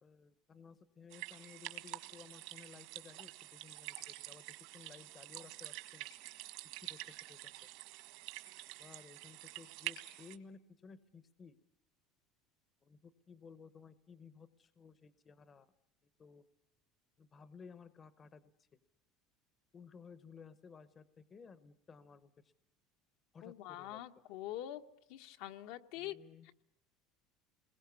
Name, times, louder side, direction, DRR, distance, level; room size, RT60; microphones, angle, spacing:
voice 1, 0.0-6.1 6.6-7.7 8.8-11.6 12.8-15.7 16.2-16.5 17.2-18.7 19.7-22.5 23.3-24.0 25.9-26.5, left 5 dB, 25° left, 14 dB, 0.9 m, -57 dB
sound 1, 1.1-10.4, right 17 dB, 70° right, 1.7 m, -48 dB
voice 2, 23.4-24.8 25.1-26.2, left 13 dB, 70° left, 7 dB, 1.3 m, -44 dB
29.0 x 21.5 x 7.0 m, 0.80 s
cardioid pair, 155°, 0 cm